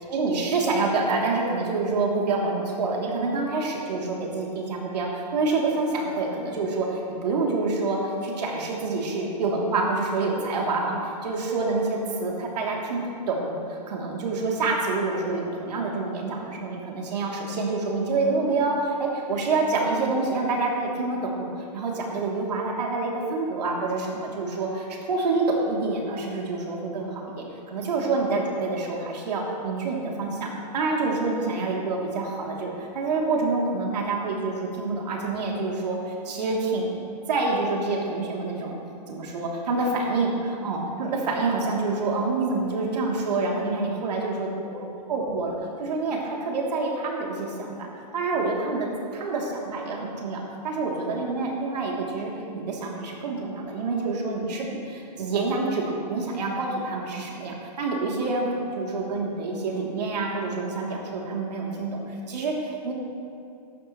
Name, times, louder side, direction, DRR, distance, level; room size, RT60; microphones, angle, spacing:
voice 1, 0.1-13.0 13.3-36.9 37.3-38.8 39.1-44.5 45.1-47.9 48.1-62.9, right 3 dB, 70° right, -2 dB, 2.9 m, -27 dB
15.0 x 11.5 x 3.1 m, 2.4 s
hypercardioid pair, 155°, 21 cm